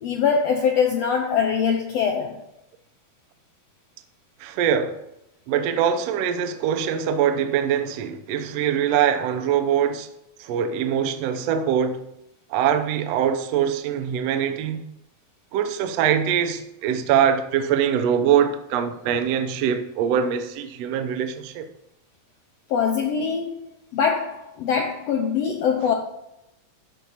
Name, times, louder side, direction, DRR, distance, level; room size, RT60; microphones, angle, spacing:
voice 1, 0.0-2.4 22.7-23.6 23.9-25.9, left 6 dB, 80° left, 1.5 m, -23 dB
voice 2, 4.4-5.0 5.5-10.1 10.4-12.0 12.5-14.9 15.5-21.7, right 8 dB, 75° right, 1.5 m, -23 dB
12.5 x 4.6 x 4.1 m
omnidirectional pair, 3.9 m